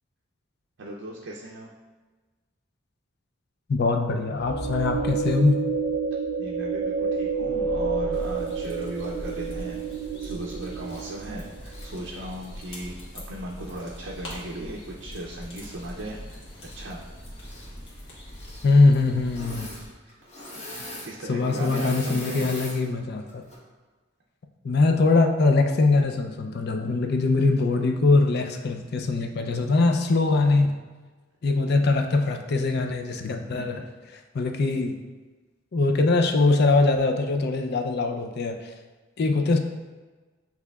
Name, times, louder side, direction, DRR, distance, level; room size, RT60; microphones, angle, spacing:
voice 1, 0.8-1.7 6.4-9.8 10.2-16.4 16.7-17.0 20.0-20.2 21.0-22.5 33.5-33.8 39.3-39.4, right 1 dB, 65° right, -2 dB, 0.5 m, -37 dB
voice 2, 3.7-5.6 18.6-19.7 21.3-23.4 24.6-30.7 31.4-33.8 34.3-35.0 35.7-38.7 39.2-39.6, left 3 dB, 55° left, 5 dB, 0.4 m, -22 dB
sound 1, 4.3-11.6, right 5 dB, 10° left, 0.8 m, -29 dB
sound 2, 8.1-19.9, equal, 75° left, 1.3 m, -42 dB
Engine / Mechanisms, 10.8-11.2 11.6-12.9 13.7-13.8 16.5-17.0 17.3-17.7 18.3-18.7 19.2-19.8 20.1-22.8 23.3-23.6, left 1 dB, 35° left, 1.1 m, -41 dB
8.0 x 2.8 x 2.3 m, 1.3 s
head